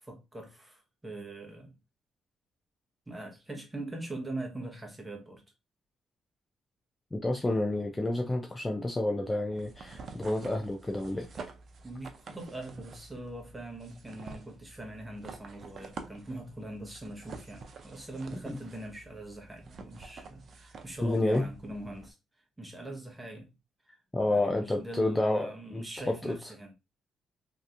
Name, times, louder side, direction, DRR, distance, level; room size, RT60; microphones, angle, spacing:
voice 1, 0.0-1.7 3.1-5.4 11.8-22.2 22.6-23.5 24.3-26.7, right 1 dB, 15° right, 1.2 m, -42 dB
voice 2, 7.1-11.3 18.5-18.6 21.0-21.5 24.1-26.4, left 2 dB, 15° left, 0.5 m, -29 dB
sound 1, 9.5-22.1, right 4 dB, 55° right, 0.5 m, -48 dB
3.1 x 2.8 x 2.5 m
cardioid pair, 90°, 0 cm